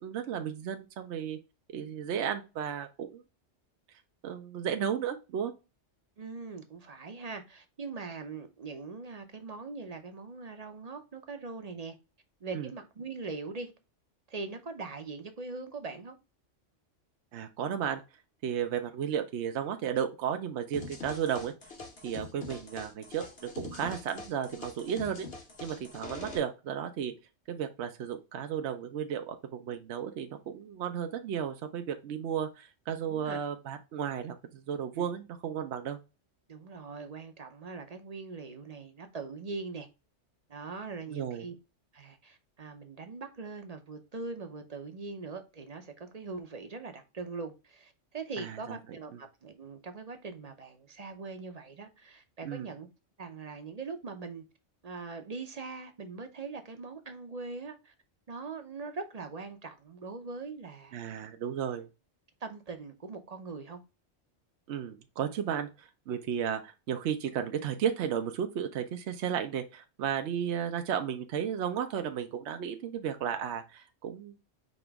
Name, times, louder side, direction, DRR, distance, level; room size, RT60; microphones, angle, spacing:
voice 1, 0.0-1.4 1.7-3.2 4.2-5.5 12.5-12.7 17.3-18.0 18.4-21.5 22.0-25.3 25.6-27.1 27.5-36.0 41.1-41.5 48.4-48.8 49.1-49.2 52.4-52.7 60.9-61.9 64.7-74.3, right 8 dB, 70° right, 0.9 m, -34 dB
voice 2, 6.2-11.9 12.4-13.7 14.3-16.2 33.1-33.4 34.9-35.1 36.5-39.9 40.5-41.6 41.9-52.9 53.2-54.4 54.8-57.9 58.3-61.0 62.4-63.8, right 4 dB, 40° right, 0.7 m, -41 dB
sound 1, 20.7-26.4, left 4 dB, 55° left, 1.4 m, -44 dB
5.2 x 2.9 x 3.4 m
omnidirectional pair, 1.3 m